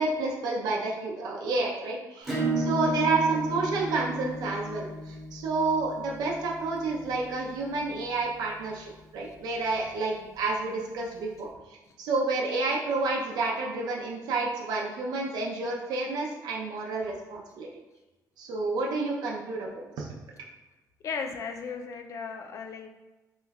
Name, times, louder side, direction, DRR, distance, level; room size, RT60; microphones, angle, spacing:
voice 1, 0.0-17.7 18.4-20.1, right 3 dB, 85° right, -2 dB, 0.5 m, -30 dB
Acoustic guitar / Strum, 2.2-7.5, right 2 dB, ahead, 0.7 m, -33 dB
voice 2, 21.0-22.9, left 5 dB, 50° left, 5 dB, 0.4 m, -36 dB
2.9 x 2.2 x 3.4 m, 1.1 s
cardioid pair, 145°, 7 cm